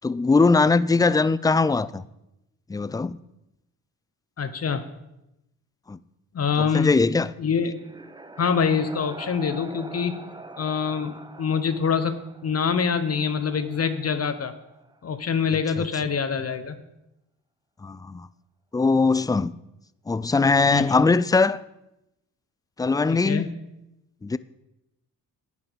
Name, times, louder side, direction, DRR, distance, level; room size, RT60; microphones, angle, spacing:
voice 1, 0.0-2.0 2.7-3.2 5.9-6.0 6.6-7.3 15.8-15.9 17.8-18.3 18.7-19.5 20.1-21.6 22.8-23.5 24.2-24.4, left 4 dB, 10° left, 0.4 m, -21 dB
voice 2, 4.4-4.9 6.3-6.9 7.4-7.7 8.4-10.2 10.6-14.5 15.0-16.7 20.7-21.0 23.1-23.5, left 6 dB, 45° left, 0.9 m, -25 dB
sound 1, 7.5-15.2, right 1 dB, 10° right, 0.8 m, -44 dB
11.0 x 9.4 x 5.2 m
cardioid pair, 80°, 34 cm